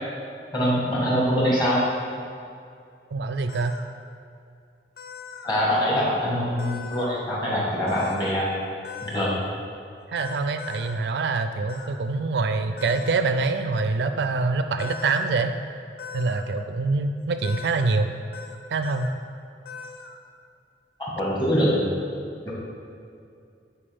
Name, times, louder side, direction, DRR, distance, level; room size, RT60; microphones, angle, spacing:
voice 1, 0.5-1.8 5.4-8.5 9.0-9.4 21.0-21.9 22.4-22.5, equal, 25° left, -5 dB, 1.7 m, -23 dB
voice 2, 3.1-3.8 10.1-15.5 16.1-18.2 18.7-19.2, right 3 dB, 70° right, 8 dB, 0.4 m, -25 dB
sound 1, 3.5-3.8 5.0-5.5 6.6-7.1 7.9-8.4 8.8-9.3 10.2-10.9 11.7-11.9 12.8-13.2 14.8-15.3 16.0-16.4 17.4-17.9 18.3-18.6 18.8-19.1 19.7-20.2, left 6 dB, 60° left, 0.6 m, -40 dB
8.7 x 4.5 x 3.5 m, 2.5 s
head